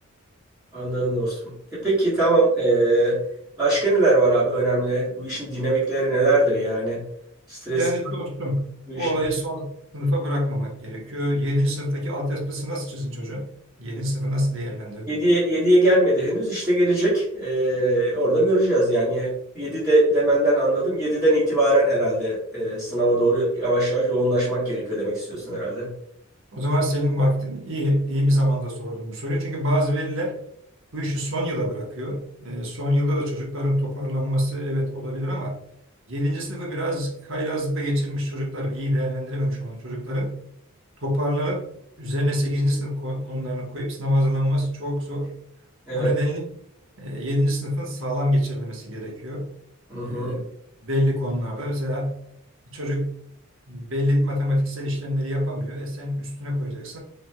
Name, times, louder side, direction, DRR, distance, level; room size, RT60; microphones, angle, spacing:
voice 1, 0.7-1.4 1.7-3.2 3.6-7.0 7.5-7.8 8.9-9.1 15.1-25.9 45.9-46.1 49.9-50.4, right 1 dB, 5° right, -12 dB, 1.4 m, -21 dB
voice 2, 7.7-8.7 8.9-13.5 13.8-15.2 26.5-30.4 30.9-35.6 36.1-40.3 41.0-41.7 42.0-45.4 45.9-46.5 47.0-49.5 50.0-50.4 50.8-52.2 52.7-53.1 53.7-57.0, equal, 60° right, -1 dB, 1.0 m, -25 dB
4.2 x 3.1 x 2.2 m, 0.72 s
head